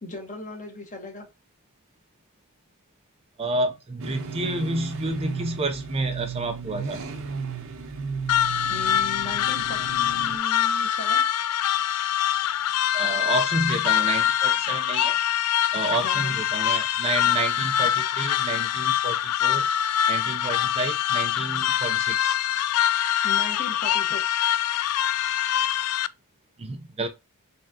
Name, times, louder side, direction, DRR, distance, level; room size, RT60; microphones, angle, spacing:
voice 1, 0.0-1.2 8.7-11.2 16.0-16.4 23.2-24.7, left 2 dB, 35° left, 1.4 m, -38 dB
voice 2, 3.4-7.0 12.9-19.7 20.1-22.4 26.6-27.1, right 2 dB, 25° right, 0.5 m, -30 dB
sound 1, 4.0-10.4, right 5 dB, 65° right, 0.9 m, -34 dB
sound 2, 8.3-26.1, left 10 dB, 85° left, 0.3 m, -24 dB
4.3 x 3.6 x 2.7 m
head